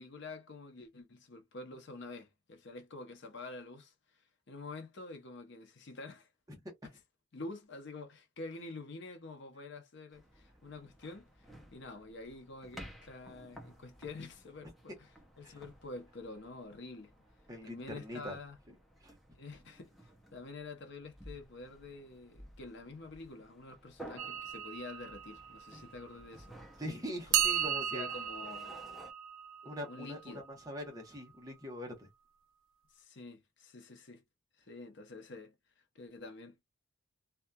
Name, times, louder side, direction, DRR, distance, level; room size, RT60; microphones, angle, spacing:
voice 1, 0.0-6.3 7.3-15.1 15.4-17.1 17.6-18.6 19.3-26.6 27.3-27.4 27.9-28.8 29.8-30.5 32.9-34.2 34.6-36.6, left 3 dB, 60° left, 0.7 m, -48 dB
sound 1, 10.1-29.1, right 1 dB, ahead, 0.5 m, -55 dB
voice 2, 17.5-18.4 19.0-19.1 26.8-28.1 29.6-32.1, equal, 20° right, 0.9 m, -43 dB
sound 2, 24.2-26.6 27.3-31.2, right 9 dB, 80° right, 0.5 m, -37 dB
2.7 x 2.3 x 2.2 m
head